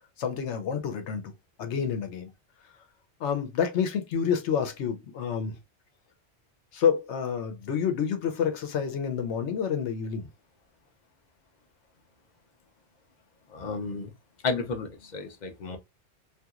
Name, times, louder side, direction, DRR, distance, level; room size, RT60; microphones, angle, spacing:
voice 1, 0.2-1.3 1.6-2.3 3.2-5.6 6.7-10.3, left 7 dB, 75° left, 1.0 m, -28 dB
voice 2, 13.5-14.1 14.4-15.8, left 4 dB, 50° left, 0.6 m, -32 dB
2.8 x 2.6 x 2.3 m
omnidirectional pair, 1.2 m